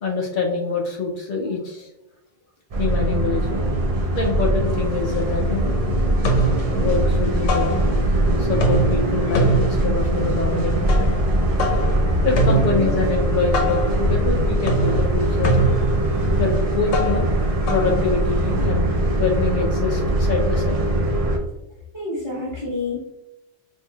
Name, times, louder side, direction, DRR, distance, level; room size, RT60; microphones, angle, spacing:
voice 1, 0.0-1.9 2.8-3.6 4.1-5.7 6.7-7.8 8.4-11.1 12.2-17.3 17.7-20.8, left 4 dB, 55° left, 0 dB, 0.6 m, -25 dB
sound 1, 2.7-21.4, right 1 dB, 60° right, 0.4 m, -21 dB
sound 2, 4.7-4.8 5.1-5.7 6.0-8.2 8.5-18.6, right 2 dB, 90° left, 1.0 m, -25 dB
voice 2, 12.5-12.9 21.9-23.0, left 2 dB, 25° right, -7 dB, 0.8 m, -28 dB
4.4 x 2.6 x 2.3 m, 0.94 s
omnidirectional pair, 1.3 m